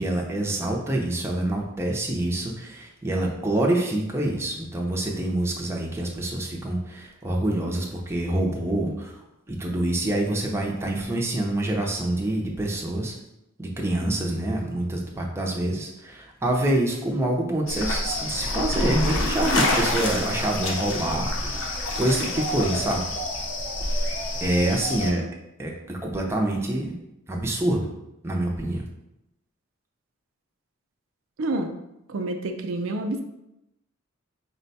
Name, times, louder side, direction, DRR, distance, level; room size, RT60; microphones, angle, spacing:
voice 1, 0.0-9.1 9.5-13.2 13.6-21.3 22.0-23.0 24.4-25.2 25.6-26.9 27.3-27.9 28.2-28.8, right 1 dB, 15° right, -1 dB, 0.5 m, -26 dB
sound 1, 17.7-25.1, left 1 dB, 75° left, 0.7 m, -27 dB
voice 2, 31.4-31.8 32.1-33.2, right 2 dB, 80° right, 5 dB, 0.4 m, -28 dB
4.3 x 2.2 x 4.0 m, 0.88 s
head